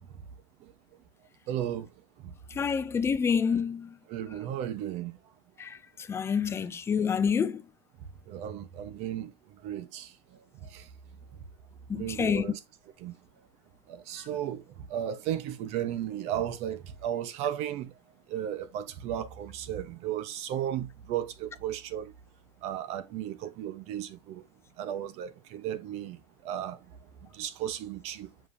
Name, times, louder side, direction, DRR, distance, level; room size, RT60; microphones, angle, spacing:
voice 1, 1.5-1.9 2.2-2.3 4.1-5.2 8.3-10.9 11.9-12.6 13.0-13.2 13.9-17.9 18.3-22.1 22.6-24.5 24.8-26.9 27.3-28.3, right 10 dB, 50° right, 1.2 m, -35 dB
voice 2, 2.6-3.9 5.6-5.8 6.1-7.6 11.9-12.5, left 6 dB, 20° left, 0.6 m, -27 dB
7.7 x 5.6 x 2.8 m
supercardioid pair, 120°, 14 cm